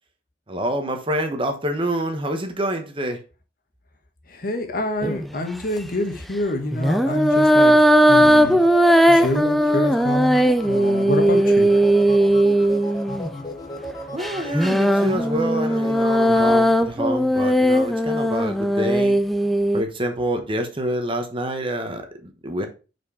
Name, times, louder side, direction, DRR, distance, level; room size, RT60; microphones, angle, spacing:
voice 1, 0.5-3.2 14.1-19.2 19.7-22.7, right 1 dB, 30° right, 1.1 m, -27 dB
voice 2, 4.3-8.6 9.1-11.7, left 1 dB, 55° left, 1.4 m, -27 dB
sound 1, 5.0-5.3 6.7-13.3 14.2-19.8, equal, ahead, 0.3 m, -18 dB
sound 2, 6.9-16.7, left 1 dB, 25° left, 1.0 m, -34 dB
5.8 x 4.6 x 4.8 m
head